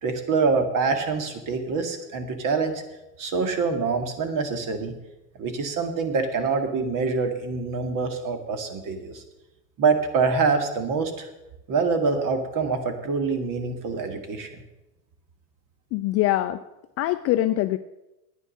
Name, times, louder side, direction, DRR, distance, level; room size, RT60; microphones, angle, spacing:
voice 1, 0.0-2.8 3.2-4.9 5.4-9.2 9.8-11.3 11.7-14.6, right 4 dB, 40° right, 7 dB, 2.1 m, -25 dB
voice 2, 15.9-16.6 17.0-17.8, left 15 dB, 35° left, 10 dB, 0.4 m, -23 dB
9.8 x 9.4 x 6.5 m, 0.97 s
hypercardioid pair, 105°, 48 cm